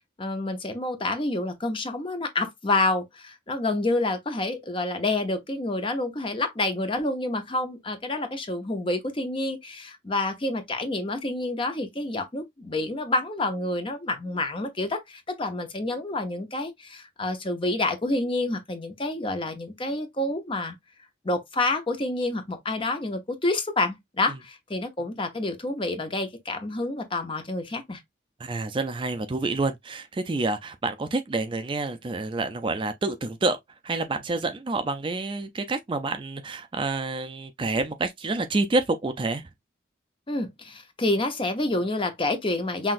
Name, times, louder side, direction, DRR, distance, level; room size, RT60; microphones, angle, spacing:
voice 1, 0.2-20.8 21.2-28.0 40.3-42.9, left 2 dB, 25° left, 0.7 m, -28 dB
voice 2, 28.4-33.6 33.8-39.4, right 3 dB, 25° right, 0.4 m, -28 dB
5.7 x 2.5 x 2.5 m
head